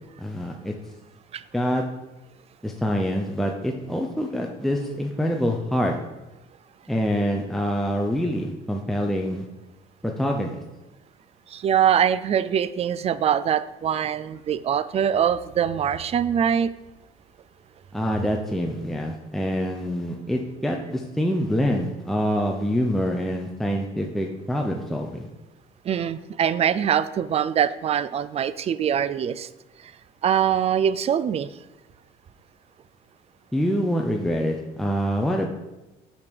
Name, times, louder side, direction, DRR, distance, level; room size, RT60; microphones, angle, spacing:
voice 1, 0.2-0.7 1.5-1.8 2.6-6.0 6.9-9.5 10.0-10.6 17.9-25.3 33.5-35.5, equal, ahead, 1 dB, 0.6 m, -25 dB
voice 2, 11.5-16.7 25.8-29.5 30.2-31.5, right 9 dB, 35° right, 15 dB, 0.4 m, -23 dB
6.2 x 5.8 x 5.2 m, 1.0 s
cardioid pair, 110°, 17 cm